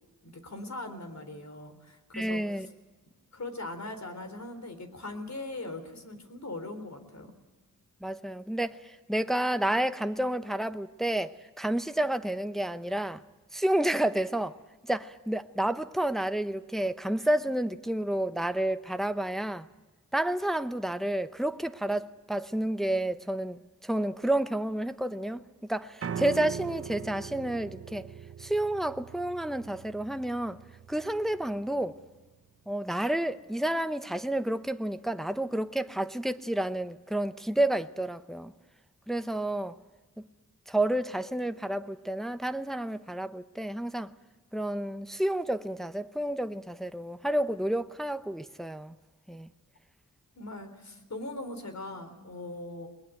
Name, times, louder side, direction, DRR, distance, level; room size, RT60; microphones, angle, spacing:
voice 1, 0.2-2.6 3.3-7.3 50.4-52.9, left 2 dB, 50° left, 4.0 m, -40 dB
voice 2, 2.1-2.7 8.0-13.2 13.5-14.6 14.9-19.7 20.1-28.1 28.4-30.6 30.9-32.0 32.7-38.5 39.1-39.8 40.7-44.1 44.5-49.0 49.3-49.5, right 1 dB, ahead, 0.9 m, -30 dB
Piano, 26.0-32.2, right 7 dB, 45° right, 0.7 m, -41 dB
21.5 x 20.0 x 9.1 m
cardioid pair, 55°, 34 cm